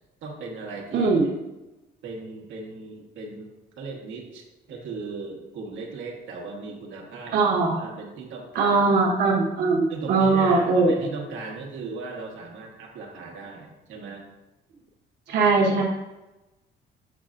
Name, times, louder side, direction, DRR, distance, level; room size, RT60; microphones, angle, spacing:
voice 1, 0.2-1.1 2.0-3.5 3.8-7.4 7.8-8.8 9.9-14.2, right 3 dB, 90° right, -1 dB, 1.3 m, -37 dB
voice 2, 0.9-1.4 7.3-7.8 8.5-11.1 15.3-15.8, right 3 dB, 65° right, -3 dB, 1.1 m, -21 dB
8.0 x 5.3 x 2.5 m, 1.0 s
cardioid pair, 155°, 19 cm